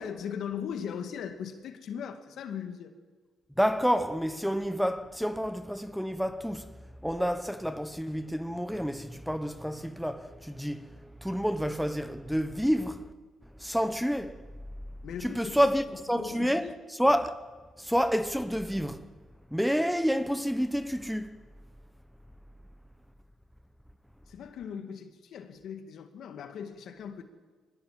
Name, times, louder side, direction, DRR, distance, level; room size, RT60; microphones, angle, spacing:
voice 1, 0.0-2.9 15.0-15.6 16.2-16.8 24.3-27.2, left 7 dB, 70° left, 2.1 m, -39 dB
voice 2, 3.6-6.8 7.0-13.1 13.6-14.5 15.2-16.7 17.0-17.5 17.8-19.1 19.5-21.4, equal, ahead, 1.2 m, -29 dB
23.5 x 20.0 x 7.7 m
cardioid pair, 90°, 0 cm